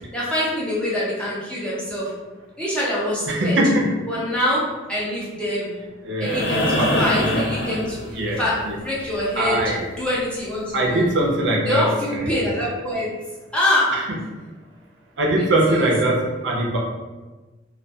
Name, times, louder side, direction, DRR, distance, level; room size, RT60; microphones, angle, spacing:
voice 1, 0.1-2.1 2.6-3.6 4.1-4.6 4.9-5.8 6.2-9.6 10.0-11.0 11.6-13.1 13.5-13.9 15.4-15.9, left 1 dB, 5° left, -8 dB, 0.5 m, -25 dB
voice 2, 3.3-3.8 6.0-7.4 8.1-8.8 9.4-9.8 10.7-11.8 12.1-12.4 13.9-14.0 15.2-16.8, right 1 dB, 65° right, -1 dB, 0.5 m, -22 dB
sound 1, 6.2-8.5 10.4-10.5, left 1 dB, 55° left, 0.4 m, -23 dB
2.2 x 2.2 x 2.6 m, 1.2 s
head